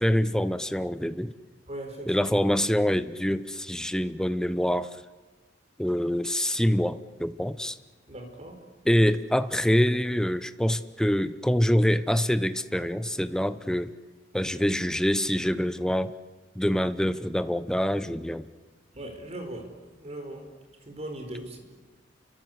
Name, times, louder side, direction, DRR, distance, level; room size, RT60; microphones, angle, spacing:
voice 1, 0.0-1.3 2.1-5.0 5.8-7.8 8.8-13.9 14.3-16.1 16.6-18.5, equal, 5° left, 12 dB, 0.8 m, -25 dB
voice 2, 1.7-2.3 8.1-8.6 18.9-19.7 20.0-20.5 20.8-21.6, right 1 dB, 35° right, 5 dB, 4.8 m, -39 dB
29.0 x 24.5 x 8.2 m, 1.3 s
head